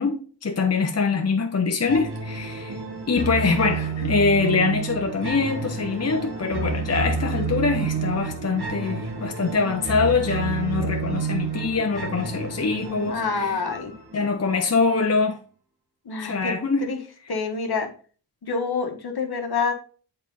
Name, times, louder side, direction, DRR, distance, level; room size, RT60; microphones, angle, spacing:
voice 1, 0.0-2.8 3.1-13.6 14.1-15.4 16.2-16.9, left 4 dB, 35° left, 1.0 m, -24 dB
sound 1, 1.9-14.8, right 5 dB, 65° right, 1.7 m, -30 dB
voice 2, 13.1-13.9 16.0-16.5 16.8-17.0 17.3-17.9 18.4-19.7, left 4 dB, 60° left, 1.4 m, -27 dB
7.1 x 4.4 x 3.9 m
cardioid pair, 55°, 42 cm